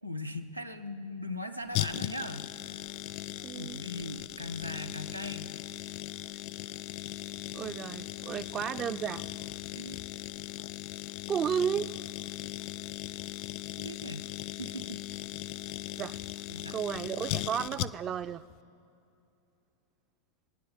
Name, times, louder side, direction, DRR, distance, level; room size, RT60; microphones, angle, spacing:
voice 1, 0.0-2.8 3.5-5.5 9.7-10.0 13.8-14.3 14.6-15.0 16.5-16.8, left 1 dB, 85° right, 6 dB, 0.8 m, -39 dB
sound 1, 1.7-18.2 18.5-18.6, left 16 dB, 45° left, 0.3 m, -38 dB
voice 2, 3.4-3.8 7.5-9.2 11.3-11.9 16.0-16.2 16.7-18.4, right 8 dB, 30° right, 14 dB, 0.4 m, -33 dB
26.5 x 9.8 x 3.9 m, 2.6 s
figure-of-eight pair, 90°, 0 cm